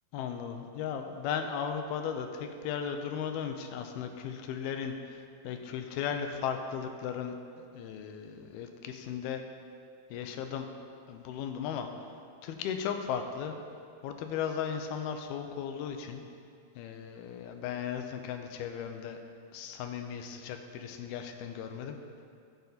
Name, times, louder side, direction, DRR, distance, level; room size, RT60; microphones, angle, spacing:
voice 1, 0.1-7.3 7.7-9.4 10.1-10.7 11.1-11.9 12.4-13.6 14.0-16.2 16.8-19.2 19.5-22.0, left 7 dB, 85° left, 5 dB, 2.7 m, -36 dB
15.0 x 8.3 x 4.1 m, 2.3 s
omnidirectional pair, 4.4 m